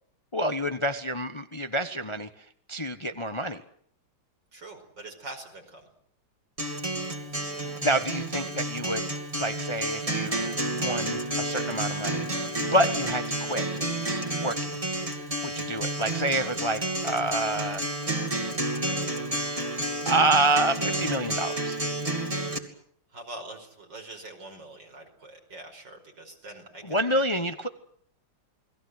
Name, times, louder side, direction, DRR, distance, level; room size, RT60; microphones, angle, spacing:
voice 1, 0.3-2.3 2.7-3.6 7.6-9.1 9.4-10.4 10.7-12.3 12.6-13.7 14.4-14.8 15.4-17.8 20.0-21.8 26.8-27.7, right 1 dB, 20° left, 9 dB, 0.9 m, -28 dB
voice 2, 4.5-5.8 22.7-22.8 23.1-27.0 27.3-27.4, right 2 dB, 75° right, 4 dB, 5.8 m, -44 dB
Acoustic guitar, 6.6-22.6, right 1 dB, 20° right, 2.6 m, -30 dB
29.0 x 20.5 x 7.9 m, 0.62 s
omnidirectional pair, 2.0 m